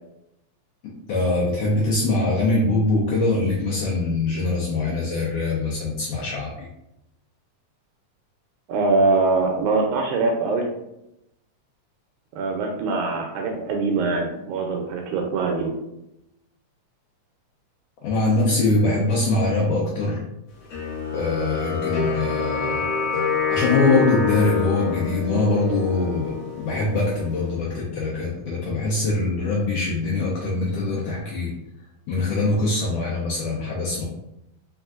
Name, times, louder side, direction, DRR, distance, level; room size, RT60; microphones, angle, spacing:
voice 1, 1.1-6.7 18.0-20.2 21.1-22.8 23.5-31.5 32.1-34.0, left 2 dB, 85° left, -4 dB, 1.3 m, -23 dB
voice 2, 8.7-10.7 12.4-15.7, right 3 dB, 80° right, 1 dB, 2.0 m, -23 dB
sound 1, 20.7-27.6, left 5 dB, 70° left, 1.1 m, -27 dB
4.4 x 3.5 x 2.4 m, 0.86 s
omnidirectional pair, 3.6 m